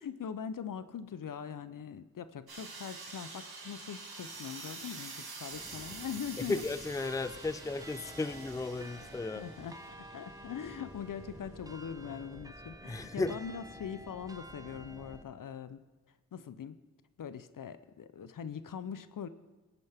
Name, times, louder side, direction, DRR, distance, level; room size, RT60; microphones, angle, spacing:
voice 1, 0.0-6.6 9.4-15.8 16.3-16.8 17.2-19.3, left 7 dB, 60° left, 13 dB, 0.7 m, -42 dB
sound 1, 2.5-11.1, right 3 dB, 85° right, 2.2 m, -47 dB
sound 2, 5.5-15.2, right 1 dB, 10° right, 0.9 m, -50 dB
voice 2, 6.5-9.5 12.9-13.4, left 3 dB, 10° left, 14 dB, 0.5 m, -34 dB
17.0 x 9.3 x 3.5 m, 1.2 s
cardioid pair, 45°, 36 cm